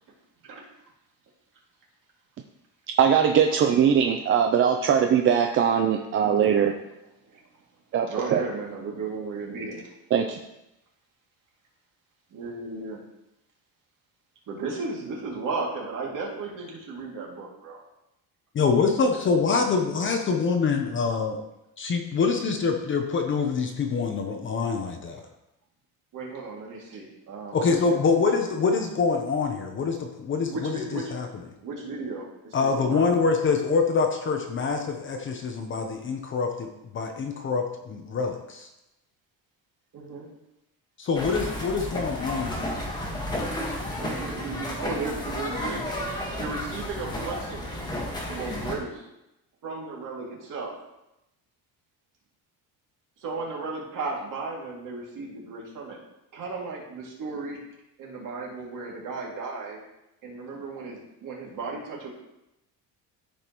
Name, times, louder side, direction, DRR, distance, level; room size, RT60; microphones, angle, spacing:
voice 1, 3.0-6.7 7.9-8.4 10.1-10.4, right 8 dB, 35° right, 4 dB, 0.4 m, -21 dB
voice 2, 8.1-9.8 12.3-13.0 14.5-17.8 26.1-28.0 30.5-31.0 31.6-32.3 32.6-33.3 39.9-40.3 44.0-45.9 46.4-47.7 48.3-48.9 49.6-50.7 53.2-56.0 56.3-57.6 58.0-59.8 60.2-62.1, right 3 dB, 50° right, -3 dB, 2.4 m, -35 dB
voice 3, 18.5-21.4 21.8-25.2 27.5-31.3 32.5-36.7 36.9-38.7 41.0-42.7, left 4 dB, 30° left, 4 dB, 0.7 m, -25 dB
sound 1, 41.1-48.7, left 1 dB, 10° left, 1.4 m, -32 dB
13.5 x 5.2 x 3.0 m, 0.89 s
cardioid pair, 175°, 39 cm